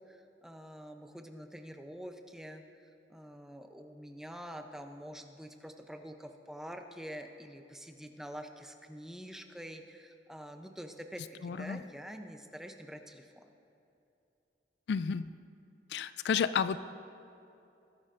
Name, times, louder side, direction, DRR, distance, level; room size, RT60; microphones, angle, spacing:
voice 1, 0.0-13.5, equal, 5° right, 5 dB, 0.6 m, -46 dB
voice 2, 11.4-11.8 14.9-15.3 15.9-16.8, left 6 dB, 70° left, 14 dB, 0.3 m, -31 dB
20.0 x 9.6 x 2.5 m, 2.8 s
head